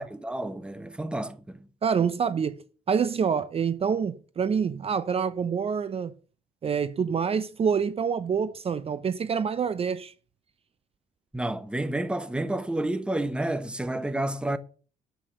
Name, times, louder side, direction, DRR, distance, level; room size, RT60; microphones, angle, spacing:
voice 1, 0.0-1.6 11.3-14.6, right 1 dB, 5° right, 1.1 m, -30 dB
voice 2, 1.8-2.5 2.9-6.1 6.6-10.1, right 6 dB, 35° right, 0.7 m, -26 dB
11.0 x 8.3 x 6.7 m
cardioid pair, 110°, 17 cm